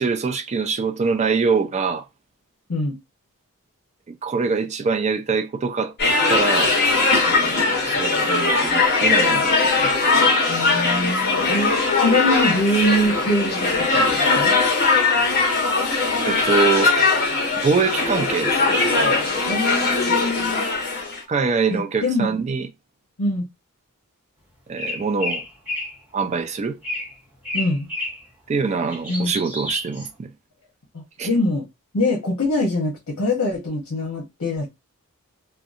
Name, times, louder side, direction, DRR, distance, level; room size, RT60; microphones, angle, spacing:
voice 1, 0.0-2.1 4.1-6.7 7.3-9.9 16.3-16.9 17.6-19.5 21.3-22.7 24.7-25.4 26.1-26.8 28.5-30.3 31.2-31.3, right 5 dB, 30° right, 0.3 m, -24 dB
sound 1, 6.0-21.2, left 3 dB, 45° left, 1.0 m, -20 dB
voice 2, 10.5-14.5 19.5-20.6 21.7-22.4 23.2-23.5 27.5-27.9 29.1-29.3 30.9-31.6 31.9-34.8, left 1 dB, 75° left, 0.8 m, -24 dB
sound 2, 24.8-26.0 26.8-27.1 27.4-28.2 28.7-30.1, left 1 dB, 10° right, 1.2 m, -30 dB
2.7 x 2.1 x 2.4 m
head